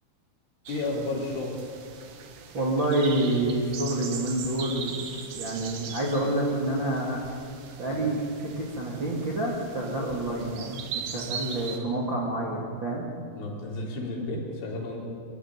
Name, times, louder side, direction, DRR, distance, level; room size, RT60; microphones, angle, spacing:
voice 1, 0.7-1.5 7.8-8.0 13.3-15.0, left 2 dB, 70° left, -3 dB, 6.5 m, -32 dB
sound 1, 0.7-11.8, right 6 dB, 60° right, 3.3 m, -40 dB
voice 2, 2.5-5.1 5.3-7.2 7.8-8.2 8.6-13.1, right 1 dB, 35° right, -3 dB, 2.0 m, -28 dB
25.5 x 15.5 x 9.7 m, 2.3 s
omnidirectional pair, 5.8 m